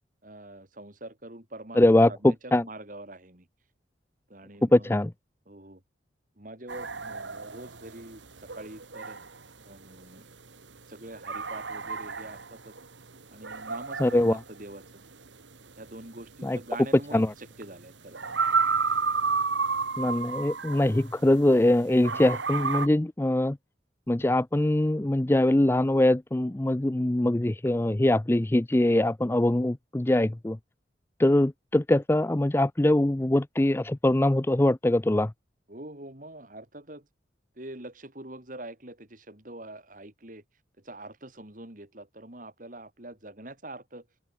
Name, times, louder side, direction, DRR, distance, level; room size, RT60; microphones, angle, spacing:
voice 1, 0.2-3.5 4.3-5.0 5.5-5.8 6.4-8.2 8.5-9.2 9.6-10.3 10.9-12.7 13.3-15.0 15.8-18.4 35.7-37.1 37.5-40.4 40.8-44.1, right 1 dB, 45° right, 3.2 m, -44 dB
voice 2, 1.8-2.6 4.6-5.1 14.0-14.4 16.4-16.6 17.1-17.3 20.0-23.6 24.1-30.6 31.2-35.3, left 1 dB, 10° left, 0.4 m, -23 dB
sound 1, 6.7-21.6 22.0-22.9, right 5 dB, 80° right, 2.2 m, -31 dB
open air
head